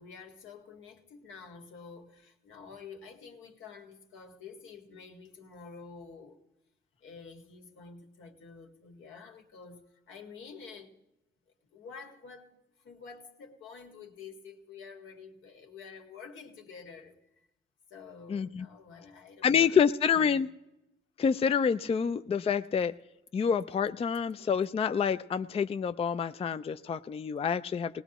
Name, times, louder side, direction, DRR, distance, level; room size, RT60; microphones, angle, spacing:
voice 1, 0.0-6.4 7.0-10.9 11.7-12.5 12.8-17.2 17.9-20.5, left 5 dB, 80° left, 2 dB, 2.0 m, -49 dB
voice 2, 18.3-18.7 19.4-20.5 21.2-22.9 23.3-28.0, left 7 dB, 30° left, 11 dB, 0.4 m, -27 dB
20.0 x 18.5 x 3.0 m, 0.94 s
cardioid pair, 90°, 20 cm